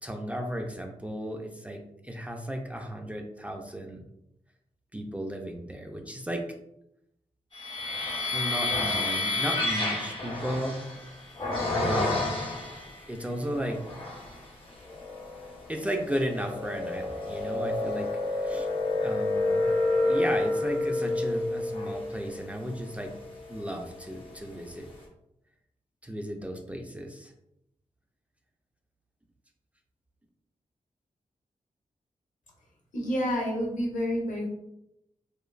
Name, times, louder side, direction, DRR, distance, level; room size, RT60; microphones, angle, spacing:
voice 1, 0.0-4.0 4.9-6.4 8.3-10.8 11.7-12.2 13.1-13.8 15.7-18.7 19.0-19.7 20.0-23.1 23.5-24.9 26.0-27.3, equal, 10° right, 3 dB, 0.4 m, -34 dB
sound 1, 7.5-13.0 13.6-14.4 14.9-24.1, left 2 dB, 40° left, 0.8 m, -30 dB
voice 2, 32.9-34.5, equal, 75° left, -1 dB, 0.8 m, -29 dB
3.1 x 2.3 x 2.3 m, 0.82 s
cardioid pair, 55°, 14 cm